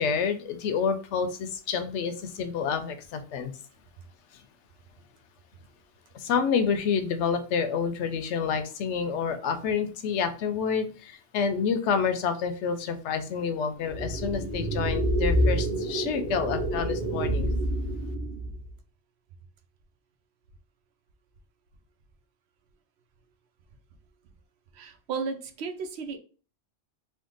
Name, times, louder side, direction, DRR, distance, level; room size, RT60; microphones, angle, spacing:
voice 1, 0.0-3.5 6.1-17.5, left 6 dB, 80° left, 9 dB, 0.9 m, -28 dB
sound 1, 13.9-18.7, right 1 dB, 40° right, 1.1 m, -28 dB
voice 2, 24.7-26.2, right 5 dB, 70° right, 7 dB, 0.8 m, -34 dB
3.5 x 2.1 x 3.7 m, 0.38 s
omnidirectional pair, 1.2 m